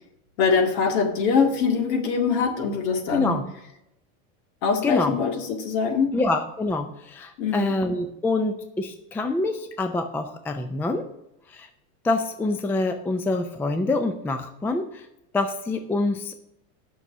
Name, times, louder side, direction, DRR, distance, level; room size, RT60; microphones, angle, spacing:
voice 1, 0.4-3.4 4.6-6.2 7.4-7.8, left 5 dB, 60° left, 5 dB, 2.0 m, -23 dB
voice 2, 3.1-3.4 4.8-5.1 6.1-11.0 11.5-11.7 12.0-15.0 15.3-16.3, left 2 dB, 5° left, 8 dB, 0.4 m, -26 dB
8.1 x 6.2 x 7.0 m, 0.84 s
supercardioid pair, 135°, 39 cm